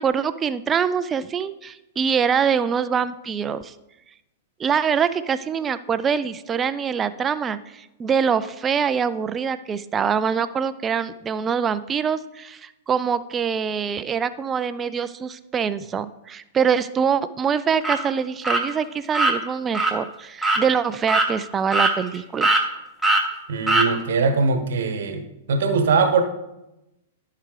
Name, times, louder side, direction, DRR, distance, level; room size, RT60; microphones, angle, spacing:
voice 1, 0.0-3.7 4.6-22.6, right 7 dB, 20° right, 13 dB, 0.4 m, -24 dB
sound 1, 17.8-18.0 18.4-18.6 19.1-19.3 19.7-19.9 20.4-20.6 21.1-21.3 21.7-22.2 22.4-22.6 23.0-23.2 23.7-23.9, right 2 dB, ahead, 1.1 m, -20 dB
voice 2, 23.5-25.2 25.5-26.2, right 4 dB, 55° right, 8 dB, 1.0 m, -21 dB
14.0 x 5.7 x 3.3 m, 0.94 s
figure-of-eight pair, 100°, 0 cm